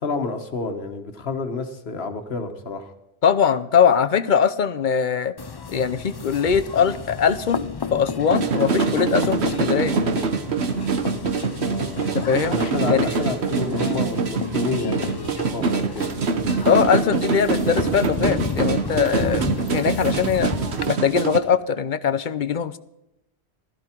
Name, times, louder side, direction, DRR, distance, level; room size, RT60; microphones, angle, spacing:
voice 1, 0.0-2.9 11.6-12.0 12.5-16.2, left 4 dB, 70° left, 7 dB, 1.6 m, -29 dB
voice 2, 3.2-5.3 5.7-10.0 12.1-12.6 12.9-13.1 16.7-20.5 20.9-22.8, left 7 dB, 50° left, 14 dB, 0.8 m, -21 dB
sound 1, 5.4-20.9, left 5 dB, 35° left, 0.4 m, -32 dB
sound 2, 8.3-21.4, right 5 dB, 90° right, 1.3 m, -24 dB
15.5 x 13.5 x 4.5 m, 0.87 s
omnidirectional pair, 1.1 m